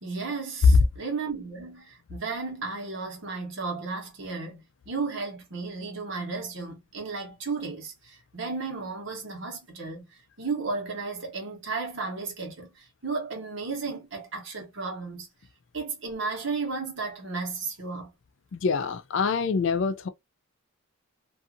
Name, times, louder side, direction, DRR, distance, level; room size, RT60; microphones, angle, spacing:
voice 1, 0.0-15.3 15.7-18.1, right 4 dB, 65° right, 1.1 m, -34 dB
voice 2, 18.5-20.1, left 5 dB, 65° left, 0.4 m, -26 dB
2.6 x 2.5 x 2.5 m
head